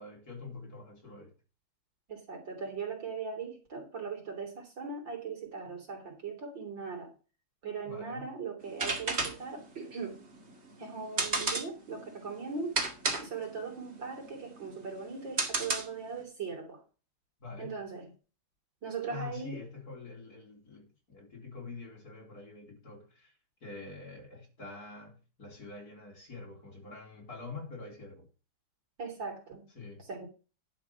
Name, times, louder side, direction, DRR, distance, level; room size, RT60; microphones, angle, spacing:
voice 1, 0.0-1.3 7.9-8.3 17.4-17.8 19.1-28.3 29.7-30.1, left 4 dB, 40° left, 4.1 m, -46 dB
voice 2, 2.1-7.1 7.6-10.2 10.8-12.8 13.2-16.8 17.6-18.1 18.8-19.6 29.0-29.7 30.1-30.3, right 5 dB, 55° right, 3.9 m, -39 dB
sound 1, 8.6-16.2, right 3 dB, 30° right, 2.3 m, -34 dB
11.5 x 5.9 x 5.9 m
omnidirectional pair, 2.4 m